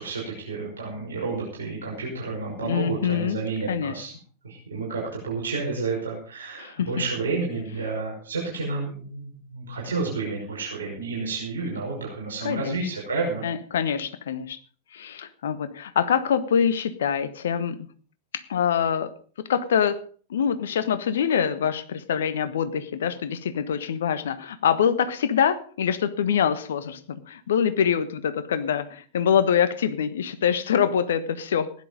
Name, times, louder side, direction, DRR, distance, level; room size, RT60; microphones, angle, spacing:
voice 1, 0.0-4.1 4.4-13.5, right 3 dB, 70° right, -3 dB, 5.4 m, -30 dB
voice 2, 2.6-3.4 3.7-3.9 6.6-6.9 12.4-12.8 13.4-14.6 14.9-17.9 18.3-19.1 19.4-20.0 20.3-31.7, left 8 dB, 60° left, 13 dB, 1.2 m, -25 dB
16.0 x 10.5 x 5.3 m, 0.43 s
figure-of-eight pair, 90°, 0 cm